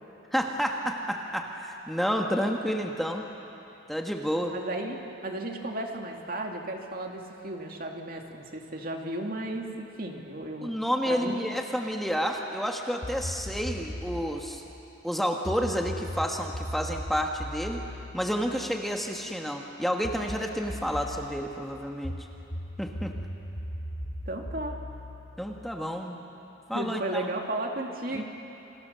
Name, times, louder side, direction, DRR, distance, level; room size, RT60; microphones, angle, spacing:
voice 1, 0.3-3.2 3.9-4.5 10.6-14.6 15.0-17.8 18.1-22.2 22.8-23.1 25.4-26.2 26.7-27.2 28.1-28.2, equal, ahead, 1 dB, 1.4 m, -30 dB
voice 2, 4.5-5.0 5.2-10.7 11.1-11.5 24.3-24.7 26.7-28.2, right 1 dB, 50° right, 2 dB, 2.5 m, -34 dB
sound 1, 13.0-14.3 15.4-19.2 20.0-21.3 22.0-26.0, equal, 50° left, 5.4 m, -38 dB
28.5 x 25.0 x 6.8 m, 3.0 s
head